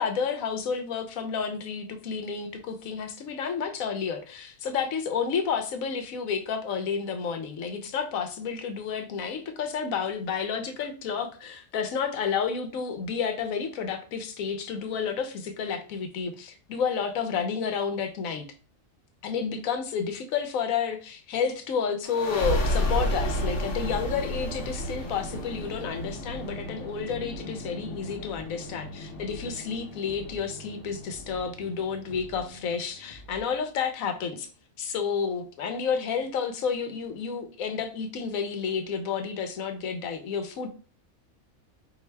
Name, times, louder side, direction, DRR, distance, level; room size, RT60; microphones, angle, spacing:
voice 1, 0.0-18.5 19.2-34.5 34.8-40.7, left 6 dB, 80° left, 1.1 m, -30 dB
sound 1, 22.0-33.3, equal, 60° left, 1.2 m, -33 dB
sound 2, 26.1-26.5 27.1-27.5 28.1-28.5 29.1-29.5 30.1-30.5 31.1-31.5 32.1-32.5 33.1-33.5, equal, 45° left, 0.4 m, -48 dB
4.6 x 2.6 x 3.3 m
omnidirectional pair, 1.4 m